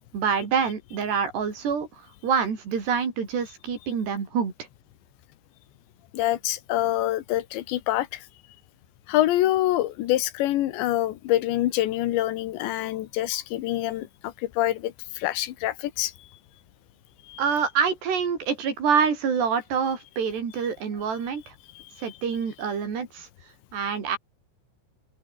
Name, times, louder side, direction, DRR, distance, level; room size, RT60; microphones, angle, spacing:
voice 1, 0.1-1.9 2.2-4.5 17.4-21.4 22.0-23.3 23.7-24.2, right 6 dB, 70° right, 6.7 m, -26 dB
voice 2, 6.1-8.2 9.1-16.1 17.3-17.4 21.8-22.1, left 14 dB, 90° left, 3.6 m, -26 dB
open air
omnidirectional pair, 5.0 m